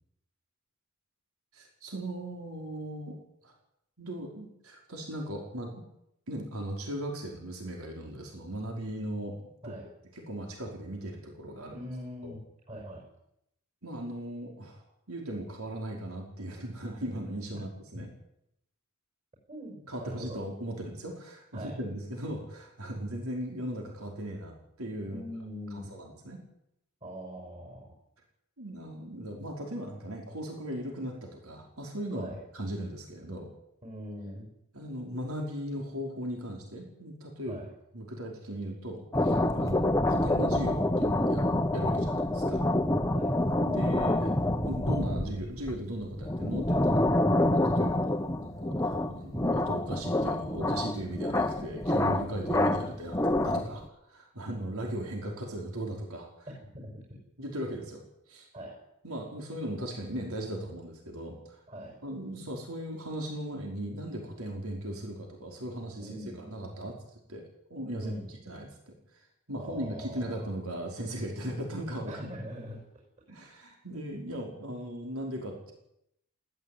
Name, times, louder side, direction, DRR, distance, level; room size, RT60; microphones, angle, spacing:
voice 1, 1.5-3.2 3.4-3.5 4.0-5.8 6.3-9.4 9.6-9.7 10.1-11.8 12.2-12.3 13.8-14.8 15.1-18.1 19.9-25.2 25.7-26.4 28.6-33.5 34.7-37.6 37.9-41.5 41.7-42.6 43.6-44.3 44.6-47.1 47.5-53.2 53.4-56.5 57.4-58.0 58.3-58.5 59.0-61.6 62.0-67.0 67.3-68.1 68.4-68.9 69.5-72.3 73.3-75.7, right 1 dB, 75° right, 1 dB, 5.1 m, -38 dB
voice 2, 11.7-13.0 17.5-17.6 17.9-18.0 19.5-20.5 21.5-21.8 25.1-26.0 27.0-27.9 32.1-32.4 33.8-34.5 37.5-37.7 43.1-43.4 52.8-52.9 56.7-57.1 58.5-58.8 61.7-62.0 66.0-66.5 68.0-68.4 69.6-70.5 72.1-73.0 73.9-74.0, equal, 30° right, 0 dB, 6.3 m, -42 dB
sound 1, 39.1-53.8, left 1 dB, 15° left, 1.1 m, -27 dB
19.5 x 16.5 x 9.5 m, 0.80 s
head